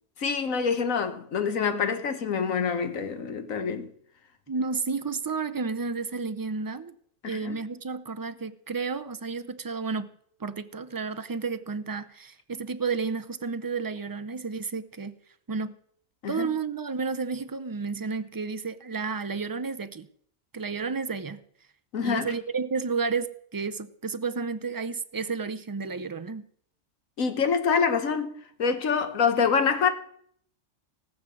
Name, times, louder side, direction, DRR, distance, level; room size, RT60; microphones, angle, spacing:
voice 1, 0.2-3.9 7.2-7.6 16.2-16.5 21.9-22.3 27.2-28.3 28.6-29.9, left 6 dB, 85° left, 1.7 m, -26 dB
voice 2, 4.5-7.0 7.3-10.1 10.4-15.2 15.5-15.8 16.3-20.1 20.5-21.4 22.0-26.5, right 4 dB, 35° right, 0.3 m, -31 dB
18.5 x 6.6 x 7.1 m
omnidirectional pair, 1.4 m